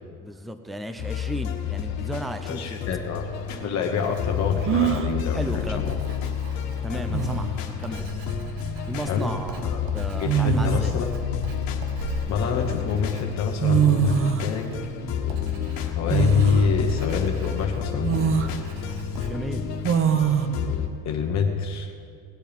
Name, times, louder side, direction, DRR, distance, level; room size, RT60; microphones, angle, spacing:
voice 1, 0.2-2.8 4.0-4.1 5.3-5.9 6.8-7.5 7.8-8.1 8.9-10.9 19.3-19.6, equal, ahead, 8 dB, 0.6 m, -34 dB
sound 1, 1.0-20.9, left 8 dB, 80° left, 1.5 m, -30 dB
voice 2, 2.5-6.0 9.0-9.3 9.7-9.8 10.2-11.1 12.3-14.7 15.8-18.1 21.0-21.9, left 6 dB, 50° left, 2 dB, 1.2 m, -26 dB
sound 2, 3.0-3.1 4.6-5.1 6.7-6.8 7.1-7.6 8.9-9.1 10.2-11.0 11.6-12.7 13.3-13.4 13.6-14.5 16.1-16.7 17.2-17.3 18.0-18.5 19.8-20.5, right 8 dB, 40° right, 0.9 m, -23 dB
Writing, 4.0-20.0, right 3 dB, 85° right, 1.6 m, -44 dB
19.0 x 7.5 x 5.3 m, 2.3 s
cardioid pair, 125°, 35 cm